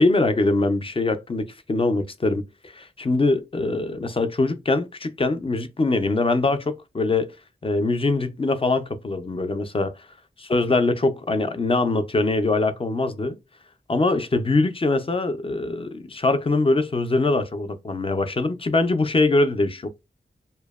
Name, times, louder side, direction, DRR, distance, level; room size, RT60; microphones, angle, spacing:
voice 1, 0.0-7.3 7.6-9.9 10.4-13.4 13.9-19.9, left 2 dB, 25° left, 0.4 m, -23 dB
2.6 x 2.1 x 2.3 m
cardioid pair, 45°, 20 cm